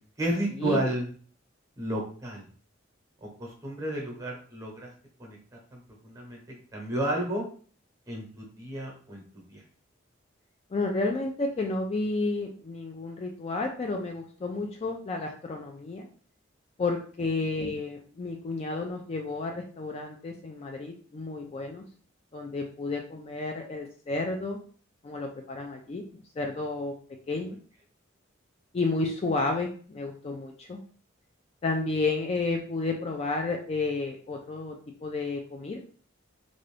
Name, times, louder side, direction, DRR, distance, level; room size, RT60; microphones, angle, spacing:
voice 1, 0.2-1.1 1.8-2.4 3.2-4.9 5.2-5.4 5.7-7.4 8.1-9.2 9.5-9.6, right 1 dB, 15° right, -1 dB, 0.9 m, -32 dB
voice 2, 10.7-16.1 16.8-21.8 22.3-24.6 25.0-26.9 27.3-27.6 28.7-30.8 31.6-35.8, left 3 dB, 30° left, 2 dB, 0.3 m, -31 dB
2.6 x 2.5 x 3.3 m, 0.44 s
head